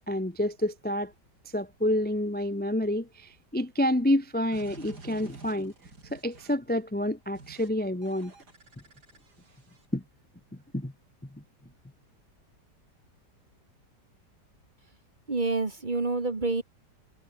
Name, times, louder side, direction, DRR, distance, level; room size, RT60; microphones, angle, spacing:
voice 1, 0.1-1.1 1.5-5.7 6.1-8.3 9.9-10.0 10.7-10.9 11.3-11.4, left 1 dB, 5° left, 1.0 m, -28 dB
sound 1, 4.5-6.7 7.3-7.7 8.0-9.9, right 3 dB, 65° right, 4.4 m, -49 dB
voice 2, 15.3-16.6, right 3 dB, 25° right, 1.6 m, -28 dB
omnidirectional pair, 1.9 m